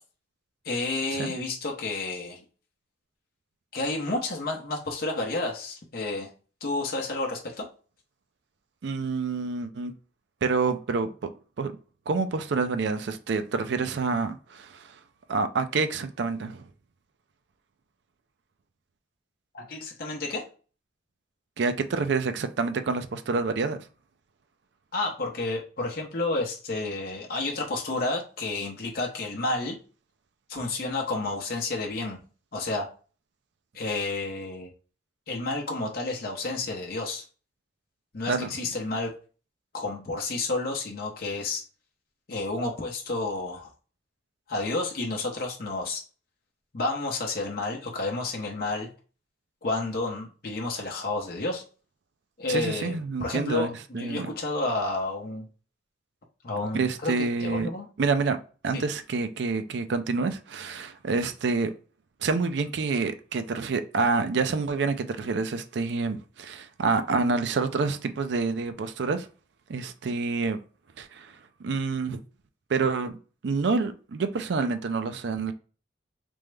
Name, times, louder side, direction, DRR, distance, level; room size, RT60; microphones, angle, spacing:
voice 1, 0.6-2.4 3.7-6.3 6.6-7.7 19.5-20.4 24.9-29.8 30.5-32.2 32.5-32.9 33.7-34.7 35.3-37.2 38.1-39.1 39.7-41.6 42.3-43.7 44.5-46.0 46.7-48.9 49.6-51.6 52.4-55.5 56.4-57.1 57.4-57.9 58.7-58.8, left 2 dB, 50° left, 0.7 m, -30 dB
voice 2, 8.8-9.9 10.4-11.3 11.6-11.7 12.1-15.0 15.3-16.6 21.6-23.9 38.3-38.5 52.5-54.3 56.7-57.7 58.0-58.4 58.6-61.7 62.2-69.3 69.7-70.6 71.0-72.2 72.7-73.2 73.4-75.5, right 4 dB, 65° right, 0.4 m, -27 dB
3.5 x 2.0 x 3.2 m
head